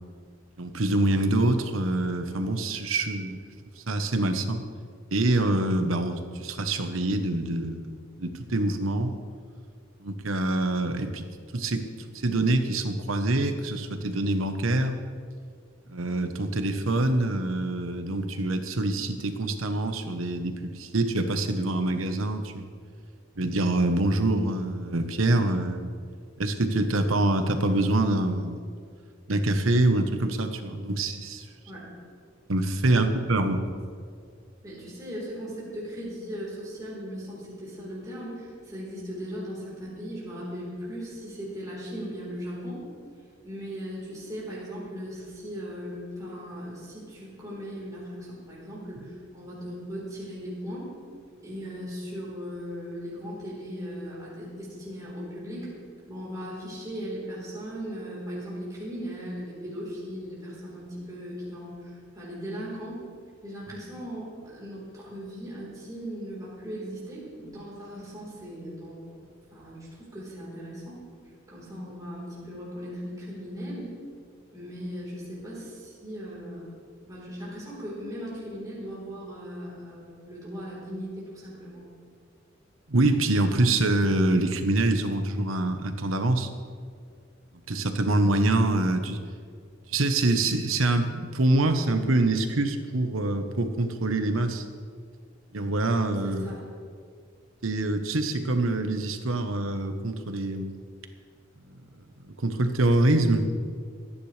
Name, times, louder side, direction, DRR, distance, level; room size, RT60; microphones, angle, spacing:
voice 1, 0.6-3.4 3.9-4.6 5.1-7.9 8.2-9.1 10.0-11.2 11.5-11.8 12.2-15.0 15.9-22.6 23.4-25.9 26.4-28.7 29.3-31.5 32.5-33.7 82.9-86.5 87.7-89.2 89.9-94.6 95.5-96.4 97.6-100.8 102.4-103.5, right 2 dB, 80° right, 7 dB, 1.1 m, -25 dB
voice 2, 34.6-42.8 43.4-50.9 51.4-55.7 56.1-63.0 63.4-71.0 71.5-73.9 74.5-76.6 77.1-81.9 96.2-96.6, equal, 20° right, -7 dB, 4.1 m, -38 dB
26.5 x 10.0 x 3.4 m, 2.1 s
head